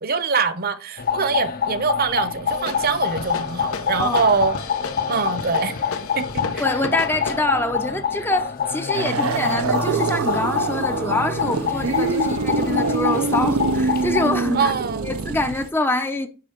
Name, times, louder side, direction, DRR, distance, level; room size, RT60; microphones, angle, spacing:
voice 1, 0.0-4.5 5.1-5.8 6.2-6.6 14.5-15.1, right 5 dB, 45° right, 0.8 m, -23 dB
sound 1, 1.0-14.3, left 7 dB, 45° left, 0.7 m, -26 dB
sound 2, 2.5-7.4, left 4 dB, 85° left, 1.0 m, -34 dB
voice 2, 4.0-4.3 6.6-14.7 15.0-16.3, left 2 dB, 10° left, 0.6 m, -25 dB
sound 3, 8.9-15.7, right 4 dB, 80° right, 0.6 m, -24 dB
10.0 x 3.4 x 5.1 m
head